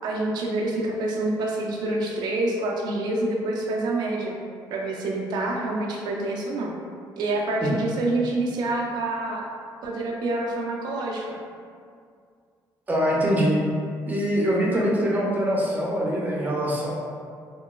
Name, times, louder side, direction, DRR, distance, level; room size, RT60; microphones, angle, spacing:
voice 1, 0.0-4.3 4.7-6.7 7.2-9.5 9.8-11.4, right 2 dB, 75° right, -1 dB, 0.4 m, -27 dB
voice 2, 12.9-13.6 14.1-16.9, equal, 20° right, -5 dB, 0.5 m, -23 dB
2.9 x 2.2 x 2.2 m, 2.2 s
cardioid pair, 105°, 8 cm